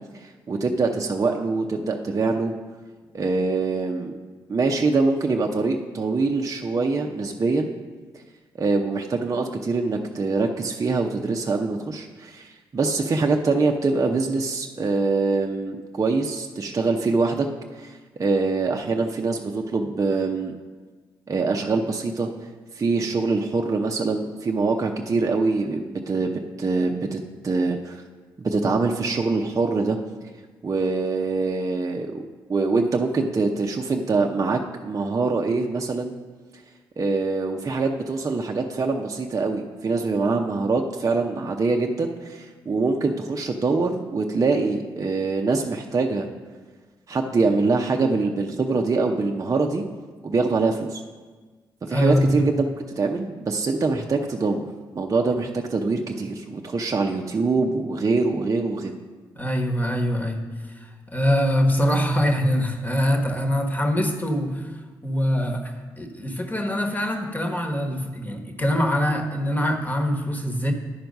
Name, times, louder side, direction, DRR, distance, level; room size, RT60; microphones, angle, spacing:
voice 1, 0.2-2.5 3.1-4.1 4.5-7.7 8.6-17.5 17.8-20.5 21.3-22.3 22.7-28.0 28.4-30.0 30.6-32.2 32.5-36.1 37.0-46.3 47.1-49.8 50.2-51.0 51.8-52.6 53.0-54.7 54.9-58.9, right 3 dB, 35° right, 1 dB, 0.7 m, -24 dB
voice 2, 51.9-52.5 59.3-64.7 65.0-70.7, equal, 20° left, 4 dB, 1.3 m, -24 dB
10.0 x 4.5 x 5.3 m, 1.4 s
supercardioid pair, 50°, 9 cm